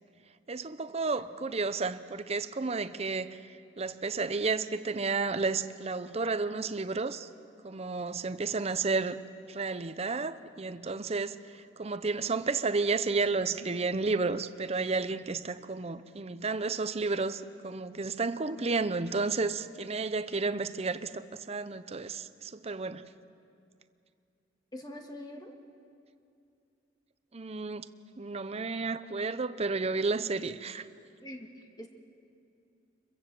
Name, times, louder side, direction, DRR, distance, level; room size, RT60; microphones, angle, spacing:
voice 1, 0.5-7.3 7.6-9.2 9.5-23.1 27.3-27.9 28.2-30.9, right 4 dB, 35° right, 12 dB, 0.7 m, -32 dB
voice 2, 24.7-25.5 31.2-31.9, left 1 dB, 25° left, 3 dB, 1.9 m, -44 dB
26.0 x 22.5 x 7.7 m, 2.5 s
head